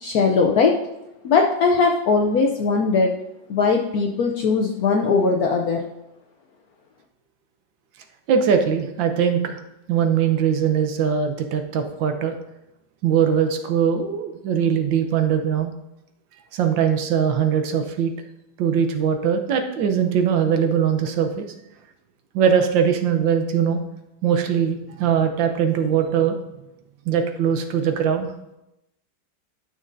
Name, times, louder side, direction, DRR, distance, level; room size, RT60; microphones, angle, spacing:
voice 1, 0.0-0.7 1.2-3.1 3.5-5.9, left 4 dB, 70° left, 1 dB, 0.9 m, -19 dB
voice 2, 8.3-9.6 9.9-12.3 13.0-15.7 16.5-18.1 18.6-21.5 22.3-23.8 24.2-26.4 27.1-28.3, right 7 dB, 75° right, 6 dB, 1.4 m, -21 dB
12.0 x 6.5 x 2.6 m, 0.91 s
omnidirectional pair, 2.2 m